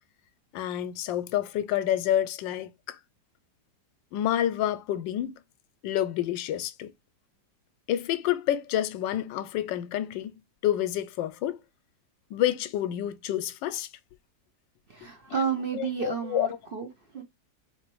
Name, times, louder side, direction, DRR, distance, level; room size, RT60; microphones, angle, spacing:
voice 1, 0.5-3.0 4.1-5.3 5.8-6.9 7.9-10.3 10.6-11.6 12.3-13.9 15.7-16.5, left 11 dB, 85° left, 1.3 m, -28 dB
voice 2, 14.9-17.2, right 6 dB, 50° right, 0.6 m, -31 dB
4.1 x 3.0 x 3.0 m
omnidirectional pair, 2.0 m